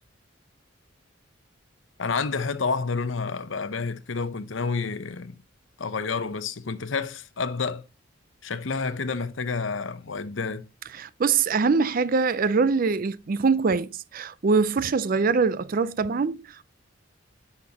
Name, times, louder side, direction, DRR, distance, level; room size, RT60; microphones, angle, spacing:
voice 1, 2.0-5.4 5.8-7.8 8.4-10.7, left 4 dB, 75° left, 0.8 m, -29 dB
voice 2, 10.9-16.6, right 4 dB, 45° right, 0.5 m, -23 dB
9.6 x 5.8 x 2.9 m
head